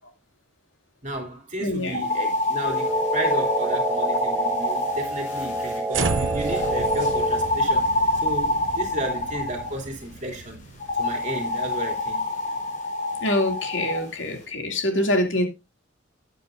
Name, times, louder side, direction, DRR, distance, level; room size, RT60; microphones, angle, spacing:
voice 1, 1.0-7.9 8.2-10.6 11.0-12.2, right 1 dB, 40° right, 3.0 m, -33 dB
voice 2, 1.6-2.0 13.2-15.4, left 1 dB, 75° left, 2.5 m, -25 dB
sound 1, 1.9-5.8 6.4-9.7 10.8-14.0, left 2 dB, 40° left, 4.2 m, -26 dB
sound 2, 2.6-7.6, right 3 dB, 10° right, 0.8 m, -28 dB
sound 3, 5.9-12.2, right 4 dB, 80° right, 0.9 m, -33 dB
13.5 x 9.3 x 2.6 m
head